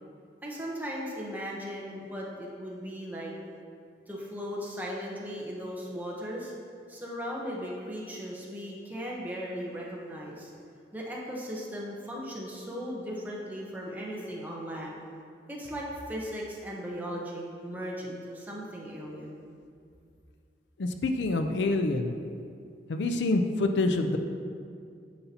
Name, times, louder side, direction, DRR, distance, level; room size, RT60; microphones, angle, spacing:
voice 1, 0.4-3.3 4.1-6.5 6.9-10.5 10.9-15.0 15.5-19.4, equal, 10° right, -4 dB, 0.9 m, -37 dB
voice 2, 20.8-22.2 22.9-24.2, left 2 dB, 80° left, 6 dB, 0.4 m, -26 dB
9.3 x 5.5 x 2.9 m, 2.3 s
head